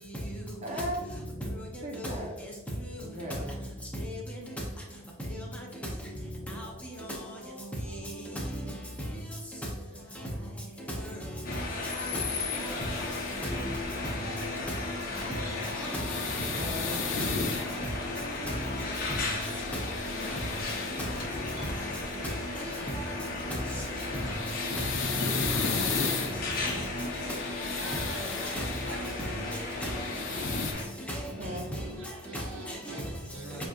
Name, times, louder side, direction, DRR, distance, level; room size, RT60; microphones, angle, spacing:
voice 1, 0.6-1.0 1.8-2.3 3.0-3.5 16.5-17.0 17.3-17.5 20.1-20.4 31.3-31.7, equal, 35° right, 0.9 m, -39 dB
voice 2, 1.4-2.2 4.0-4.2 5.3-5.5 6.5-7.3 8.0-8.4 9.1-9.2 11.0-11.2 11.5-11.6 12.5-12.8 14.0-14.1 15.8-16.2 16.6-16.7 17.5-17.6 18.4-18.5 21.0-21.2 21.6-21.7 22.1-22.2 22.6-23.1 23.7-23.9 24.8-24.9 25.4-26.1 26.7-26.8 28.1-29.4 29.8-29.9 30.3-30.6 31.1-31.9 32.3-33.1 33.5-33.7, equal, 5° left, 0.8 m, -37 dB
sound 1, 11.4-30.8, left 3 dB, 45° left, 0.9 m, -35 dB
sound 2, 12.1-28.9, equal, 25° left, 1.5 m, -45 dB
sound 3, 12.2-13.5 15.5-17.7 18.9-21.2 23.9-26.3 27.1-29.0 29.6-30.7, left 5 dB, 80° left, 0.7 m, -35 dB
voice 3, 27.6-29.8 30.8-31.1 32.0-33.6, right 2 dB, 85° right, 0.8 m, -48 dB
7.2 x 2.9 x 2.5 m
head